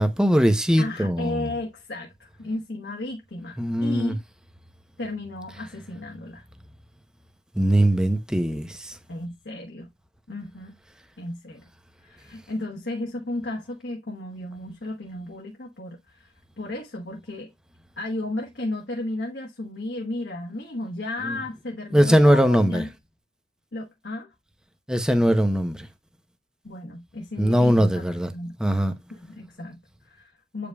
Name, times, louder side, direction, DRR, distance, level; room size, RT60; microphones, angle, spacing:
voice 1, 0.0-1.5 3.6-4.1 7.6-8.9 21.9-22.8 24.9-25.9 27.4-28.3 28.6-28.9, equal, 5° right, 0.7 m, -20 dB
voice 2, 0.8-4.2 5.0-6.4 9.1-9.9 10.3-10.8 11.2-11.6 12.0-16.3 16.6-17.5 18.0-22.9 23.7-24.3 26.6-28.0 28.3-28.5 29.1-30.7, left 2 dB, 70° left, 1.3 m, -34 dB
8.4 x 5.1 x 2.3 m
head